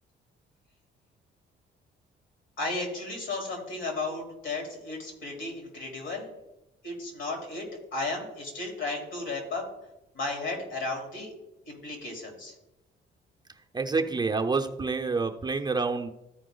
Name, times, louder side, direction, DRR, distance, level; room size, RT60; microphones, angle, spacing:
voice 1, 2.6-6.3 6.8-9.7 10.1-11.3 11.7-12.5, left 2 dB, 75° left, 1 dB, 3.5 m, -34 dB
voice 2, 13.7-16.1, right 4 dB, 20° right, 4 dB, 0.7 m, -28 dB
13.5 x 4.6 x 3.9 m, 0.91 s
cardioid pair, 90°, 20 cm